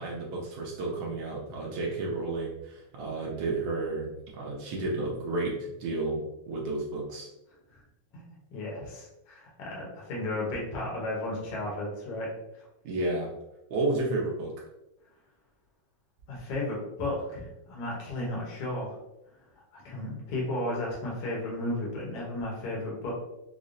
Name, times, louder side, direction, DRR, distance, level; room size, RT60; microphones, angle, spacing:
voice 1, 0.0-7.3 12.8-13.3 13.7-14.5, right 2 dB, 80° right, -2 dB, 1.3 m, -32 dB
voice 2, 8.1-12.6 16.3-19.0 19.5-23.1, left 1 dB, 60° left, -3 dB, 1.6 m, -34 dB
5.3 x 2.0 x 2.5 m, 0.91 s
omnidirectional pair, 3.3 m